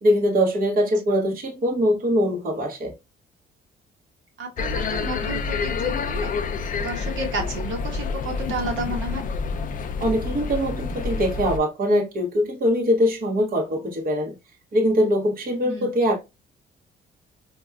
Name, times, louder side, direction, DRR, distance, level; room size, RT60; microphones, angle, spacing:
voice 1, 0.0-2.9 10.0-14.3 14.7-16.2, equal, 45° right, 0.8 m, -22 dB
voice 2, 4.4-6.4 6.8-9.2 15.7-15.9, right 2 dB, 75° right, 1.0 m, -31 dB
sound 1, 4.6-11.6, left 5 dB, 45° left, 0.4 m, -28 dB
4.4 x 2.2 x 2.3 m
cardioid pair, 90°, 20 cm